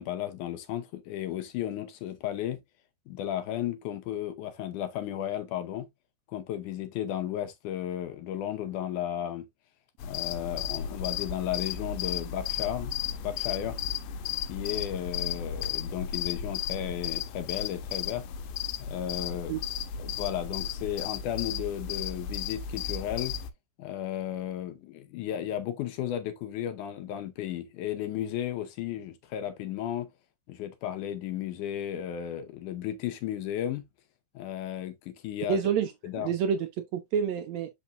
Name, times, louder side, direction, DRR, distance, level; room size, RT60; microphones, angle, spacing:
voice 1, 0.0-2.6 3.1-5.9 6.3-9.5 10.0-12.9 13.2-13.8 14.5-18.3 18.8-19.5 20.0-23.3 23.8-30.1 30.5-33.9 34.3-35.6 36.0-36.3, left 11 dB, 70° left, 2.2 m, -34 dB
sound 1, 10.0-23.5, left 8 dB, 90° left, 2.4 m, -34 dB
voice 2, 35.5-35.9 36.2-37.7, right 7 dB, 80° right, 1.6 m, -28 dB
6.9 x 5.6 x 2.5 m
omnidirectional pair, 4.0 m